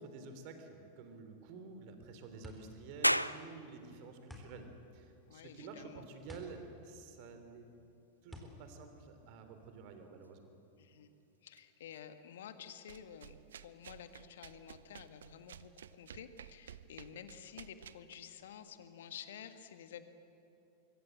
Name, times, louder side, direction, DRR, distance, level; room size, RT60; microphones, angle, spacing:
voice 1, 0.0-4.7 4.9-7.6 8.2-10.4, right 4 dB, 45° right, 7 dB, 3.4 m, -50 dB
sound 1, 1.8-10.0, left 1 dB, ahead, 4.1 m, -54 dB
sound 2, 3.0-16.1, equal, 90° left, 0.5 m, -43 dB
voice 2, 5.3-6.0 10.8-11.1 11.4-13.4 13.6-20.1, left 8 dB, 60° left, 10 dB, 1.6 m, -51 dB
sound 3, 11.5-11.6 12.7-18.1, right 9 dB, 65° right, 0.7 m, -54 dB
25.0 x 23.5 x 7.8 m, 2.8 s
figure-of-eight pair, 90°, 0 cm